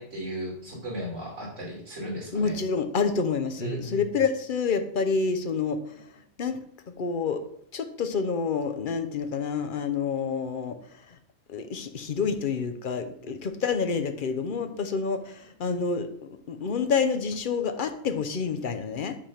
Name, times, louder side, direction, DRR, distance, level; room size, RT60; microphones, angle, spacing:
voice 1, 0.0-2.5 3.6-4.0, right 1 dB, 90° right, -2 dB, 3.1 m, -35 dB
voice 2, 2.3-6.6 7.0-7.4 7.7-11.2 11.5-19.2, left 5 dB, 50° left, 8 dB, 0.9 m, -28 dB
9.9 x 3.4 x 5.7 m, 0.68 s
omnidirectional pair, 1.2 m